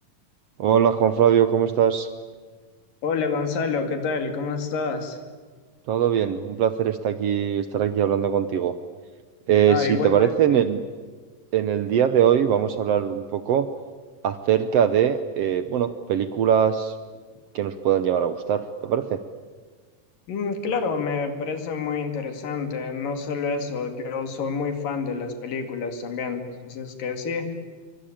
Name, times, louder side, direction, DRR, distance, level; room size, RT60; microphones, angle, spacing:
voice 1, 0.6-2.1 5.9-8.7 9.5-10.8 11.5-13.7 14.2-16.9 17.5-19.2, right 9 dB, 75° right, 11 dB, 1.4 m, -21 dB
voice 2, 3.0-5.2 9.7-10.7 20.3-27.5, left 5 dB, 75° left, 7 dB, 3.9 m, -28 dB
27.0 x 23.5 x 8.8 m, 1.5 s
omnidirectional pair, 4.0 m